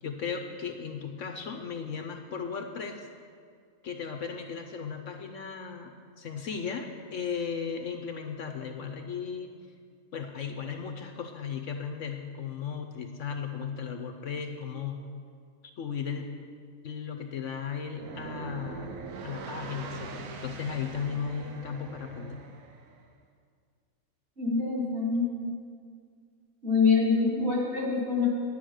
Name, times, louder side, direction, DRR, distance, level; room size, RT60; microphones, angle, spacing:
voice 1, 0.0-3.1 3.8-9.5 10.1-15.0 15.8-16.3 16.8-19.0 19.2-22.4, left 6 dB, 65° left, 5 dB, 1.0 m, -36 dB
sound 1, 17.9-23.0, right 5 dB, 70° right, 1.2 m, -42 dB
voice 2, 24.4-25.6 26.6-28.3, left 4 dB, 40° right, -7 dB, 3.4 m, -25 dB
10.0 x 10.0 x 6.4 m, 2.1 s
omnidirectional pair, 1.5 m